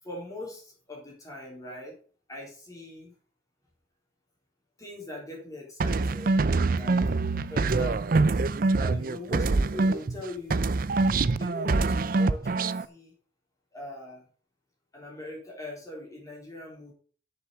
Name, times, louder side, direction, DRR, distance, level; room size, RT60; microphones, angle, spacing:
voice 1, 0.0-2.0 2.3-3.1 4.8-6.3 6.7-7.1 7.5-8.3 8.8-10.6 11.1-13.1 13.7-14.3 14.9-16.9, left 1 dB, 20° left, -2 dB, 3.8 m, -41 dB
sound 1, 5.8-10.2 10.5-12.9, right 3 dB, 50° right, 0.5 m, -25 dB
7.6 x 6.9 x 6.8 m, 0.43 s
head